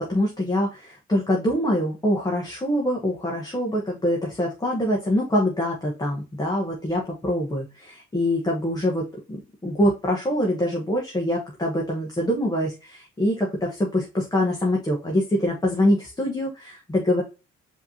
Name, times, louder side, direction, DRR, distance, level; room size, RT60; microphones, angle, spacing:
voice 1, 0.0-9.4 9.6-17.2, left 1 dB, 15° left, -2 dB, 1.1 m, -24 dB
4.9 x 3.0 x 2.7 m, 0.30 s
cardioid pair, 90°, 30 cm